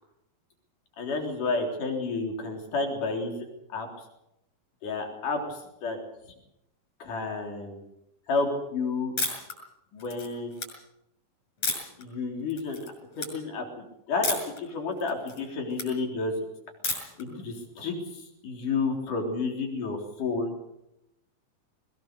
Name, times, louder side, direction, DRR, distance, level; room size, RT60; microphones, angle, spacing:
voice 1, 1.0-3.4 3.7-3.9 4.8-6.0 7.0-7.8 8.3-9.1 9.9-10.6 12.0-12.8 13.2-16.5 17.2-20.7, left 3 dB, 65° left, 2 dB, 5.2 m, -31 dB
sound 1, 9.2-9.5 10.0-10.7 11.6-12.0 12.5-12.9 13.2-13.3 14.2-14.6 15.0-15.9 16.8-17.2, left 3 dB, 50° left, 7.6 m, -31 dB
22.0 x 20.5 x 6.7 m, 0.86 s
omnidirectional pair, 4.0 m